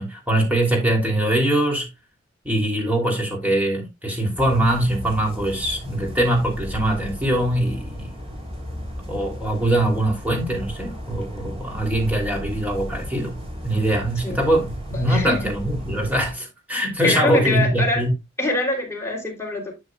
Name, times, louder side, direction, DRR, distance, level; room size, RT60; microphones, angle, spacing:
voice 1, 0.0-1.9 2.4-8.1 9.1-18.1, right 1 dB, 10° right, 3.0 m, -22 dB
sound 1, 4.4-16.3, equal, 30° right, 3.2 m, -35 dB
voice 2, 15.1-15.5 17.0-18.1 18.4-19.7, left 2 dB, 15° left, 3.1 m, -24 dB
11.5 x 7.1 x 2.3 m
head